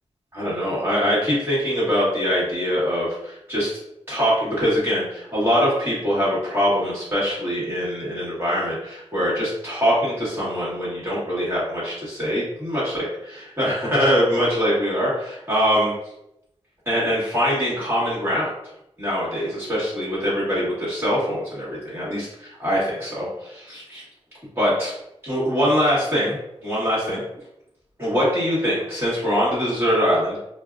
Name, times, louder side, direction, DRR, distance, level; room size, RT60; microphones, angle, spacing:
voice 1, 0.3-3.8 4.1-15.9 16.9-18.5 19.0-24.0 24.5-24.9 25.2-26.4 26.6-27.2 28.0-30.4, equal, 20° right, -9 dB, 1.3 m, -23 dB
4.4 x 2.0 x 2.4 m, 0.84 s
wide cardioid pair, 120°, 11 cm